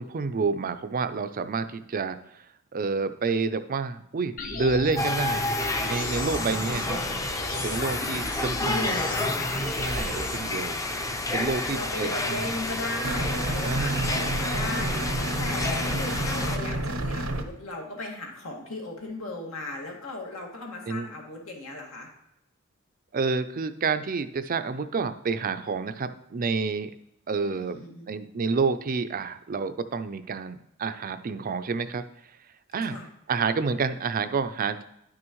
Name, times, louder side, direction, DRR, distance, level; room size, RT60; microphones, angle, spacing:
voice 1, 0.0-2.4 2.7-5.5 5.8-7.0 7.6-9.3 9.8-10.8 11.3-12.4 13.6-14.2 20.9-21.1 23.1-26.9 27.3-27.8 28.1-32.0 32.7-33.0 33.3-34.8, right 4 dB, 45° right, 11 dB, 0.5 m, -29 dB
sound 1, 4.4-10.4, left 2 dB, 40° left, 0.9 m, -35 dB
sound 2, 5.0-16.6, left 2 dB, 15° left, 0.6 m, -30 dB
voice 2, 6.7-7.1 8.4-9.5 11.7-22.1 27.4-28.1 32.9-33.1, left 2 dB, 80° left, -1 dB, 2.1 m, -36 dB
sound 3, 13.0-17.4, right 1 dB, 85° right, 0.9 m, -29 dB
10.0 x 6.2 x 3.1 m, 0.79 s
head